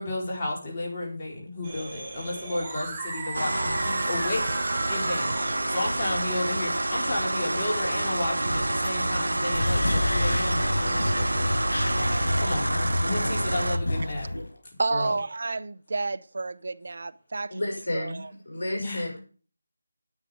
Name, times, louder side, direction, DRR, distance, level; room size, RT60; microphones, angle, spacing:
voice 1, 0.0-4.4 4.9-11.6 12.4-14.3 14.9-15.2 18.8-19.0, left 2 dB, 30° left, 4.4 m, -32 dB
sound 1, 1.6-9.3, right 3 dB, 20° right, 6.0 m, -38 dB
sound 2, 3.3-13.8, right 1 dB, 85° right, 1.1 m, -28 dB
sound 3, 9.5-14.5, left 1 dB, 80° left, 4.8 m, -28 dB
voice 2, 14.8-18.2, right 3 dB, 60° right, 0.6 m, -30 dB
voice 3, 17.5-19.2, left 1 dB, 60° left, 6.0 m, -32 dB
9.8 x 9.0 x 5.1 m
figure-of-eight pair, 165°, 0 cm